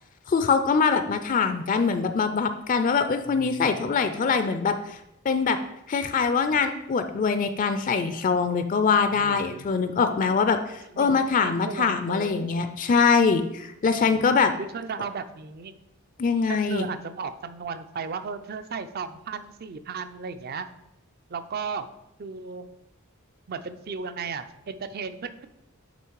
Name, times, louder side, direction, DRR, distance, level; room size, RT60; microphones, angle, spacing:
voice 1, 0.3-5.0 5.2-5.6 5.9-14.5 16.2-16.9, left 5 dB, 40° left, 9 dB, 0.4 m, -23 dB
voice 2, 3.3-4.3 9.1-9.7 10.9-12.6 14.0-14.3 14.6-15.7 16.5-20.7 21.3-21.9 22.2-22.7 23.5-25.5, right 5 dB, 45° right, 12 dB, 0.4 m, -36 dB
9.2 x 3.1 x 4.7 m, 0.85 s
head